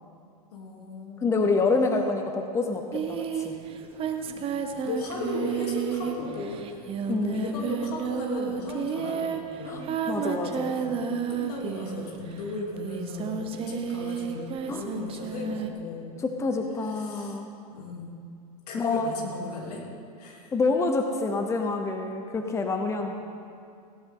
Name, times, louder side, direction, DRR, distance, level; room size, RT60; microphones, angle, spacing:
voice 1, 0.5-1.3 4.3-4.5 4.8-6.8 7.1-9.8 10.7-11.0 11.3-16.1 16.9-17.4 17.7-18.2 18.7-19.8 20.2-20.5 23.0-23.1, left 3 dB, 80° left, -2 dB, 3.1 m, -36 dB
voice 2, 1.2-3.5 7.1-7.4 9.6-10.7 14.7-14.9 16.2-17.5 18.7-19.1 20.5-23.1, left 3 dB, 15° left, 4 dB, 0.8 m, -27 dB
Singing, 2.9-12.3 12.8-15.7, right 6 dB, 30° right, 0.9 m, -31 dB
17.0 x 12.0 x 3.8 m, 2.4 s
supercardioid pair, 135°, 20 cm